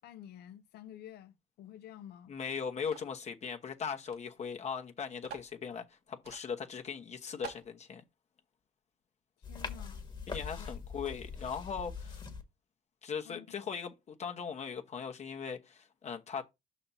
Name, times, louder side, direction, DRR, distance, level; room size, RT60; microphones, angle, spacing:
voice 1, 0.0-2.4 9.5-10.0 10.6-10.7 13.2-13.5, left 11 dB, 75° left, 0.8 m, -50 dB
voice 2, 2.3-8.0 10.3-12.2 13.0-16.4, left 6 dB, 40° left, 1.0 m, -39 dB
sound 1, 2.9-3.2 4.1-4.2 4.5-4.6 5.2-5.5 6.2-6.4 6.9-7.0 7.4-7.7, right 8 dB, 70° right, 1.7 m, -46 dB
sound 2, 9.4-12.4, left 5 dB, 25° left, 1.4 m, -42 dB
5.7 x 4.2 x 5.6 m
cardioid pair, 110°, 17 cm